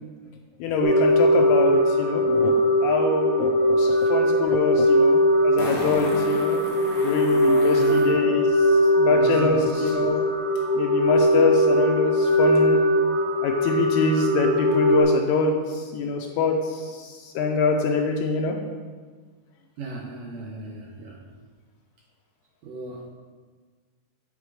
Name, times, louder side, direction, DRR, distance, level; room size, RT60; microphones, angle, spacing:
voice 1, 0.6-2.5 2.8-6.6 7.0-8.6 9.0-10.3 10.7-12.8 13.4-18.5, left 4 dB, 80° left, 2 dB, 1.8 m, -25 dB
sound 1, 0.8-15.0, equal, 50° right, 2.5 m, -20 dB
Fart, 4.5-4.6 5.6-8.1 10.6-10.7, left 1 dB, 45° left, 1.2 m, -35 dB
voice 2, 7.6-8.0 9.1-10.0 19.8-21.2 22.6-23.0, right 4 dB, 80° right, 0 dB, 1.6 m, -35 dB
9.4 x 3.7 x 4.7 m, 1.5 s
omnidirectional pair, 3.6 m